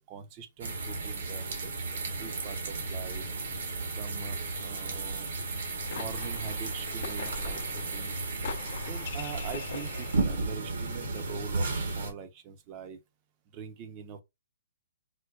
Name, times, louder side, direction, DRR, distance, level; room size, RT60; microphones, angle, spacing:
voice 1, 0.0-3.2 3.9-5.3 5.9-8.2 8.8-13.0 13.5-14.2, right 7 dB, 30° right, 0.5 m, -43 dB
sound 1, 0.6-12.1, right 3 dB, 70° right, 0.9 m, -34 dB
sound 2, 5.5-10.6, left 7 dB, 55° left, 0.6 m, -43 dB
4.4 x 2.1 x 2.4 m
hypercardioid pair, 145°, 0 cm